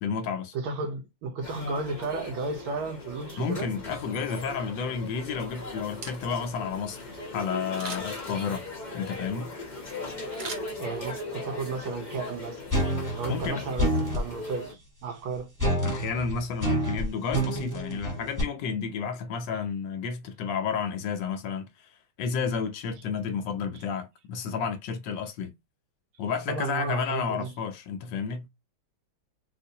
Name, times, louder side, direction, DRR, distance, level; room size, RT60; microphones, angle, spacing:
voice 1, 0.0-0.5 3.4-8.7 8.9-9.5 13.3-13.6 15.8-21.9 22.2-25.5 26.2-28.5, left 6 dB, 75° left, 1.2 m, -31 dB
voice 2, 0.5-3.7 10.8-12.6 13.1-15.5 26.5-27.5, right 3 dB, 90° right, 1.8 m, -33 dB
sound 1, 1.4-14.7, left 2 dB, 35° left, 0.8 m, -39 dB
Camera, 5.8-6.6 7.7-8.3 10.3-11.3 11.7-11.8, right 4 dB, 50° right, 1.1 m, -40 dB
sound 2, 12.7-14.3 15.6-18.4, equal, 10° right, 1.1 m, -27 dB
4.1 x 2.5 x 2.7 m
omnidirectional pair, 2.3 m